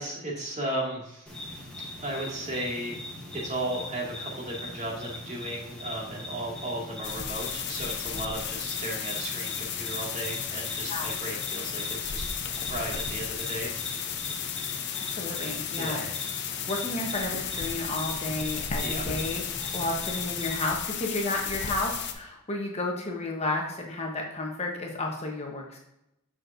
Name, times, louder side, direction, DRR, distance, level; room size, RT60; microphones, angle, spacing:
voice 1, 0.0-1.3 2.0-2.9 3.3-12.2 12.6-14.1 15.8-16.0 18.8-19.0, right 1 dB, 35° right, -3 dB, 2.1 m, -35 dB
sound 1, 1.3-20.5, left 2 dB, 5° left, 1.3 m, -40 dB
sound 2, 7.0-22.1, left 8 dB, 55° left, 0.7 m, -34 dB
voice 2, 15.1-16.1 16.7-19.4 19.7-25.8, left 2 dB, 30° left, 0 dB, 1.0 m, -32 dB
7.3 x 6.1 x 2.6 m, 0.85 s
head